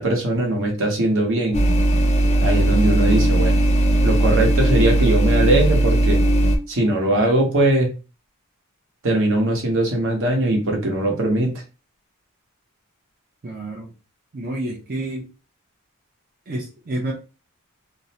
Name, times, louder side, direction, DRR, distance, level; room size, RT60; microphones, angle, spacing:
voice 1, 0.0-1.6 2.4-3.6 4.0-6.2 6.7-7.9 9.0-11.5, right 1 dB, 65° right, 1 dB, 0.9 m, -20 dB
sound 1, 1.5-6.6, right 1 dB, 30° left, 0.4 m, -17 dB
voice 2, 13.4-13.9 14.3-15.3 16.5-17.1, right 1 dB, 40° right, -2 dB, 0.5 m, -29 dB
2.5 x 2.0 x 2.8 m, 0.32 s
head